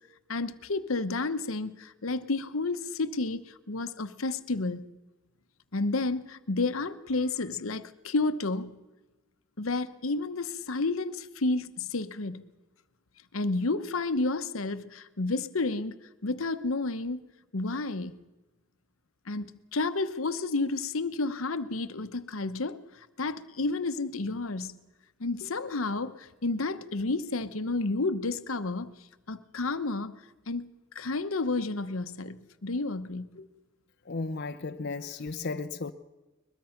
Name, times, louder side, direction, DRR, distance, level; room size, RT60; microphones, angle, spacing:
voice 1, 0.3-4.8 5.7-8.7 9.6-12.4 13.3-16.0 16.2-17.2 17.5-18.1 19.3-22.8 23.2-24.8 25.2-28.9 29.3-30.2 30.5-33.5, left 3 dB, 80° left, 1.0 m, -31 dB
voice 2, 34.1-35.9, left 3 dB, 55° left, 0.7 m, -34 dB
22.5 x 21.5 x 5.8 m
head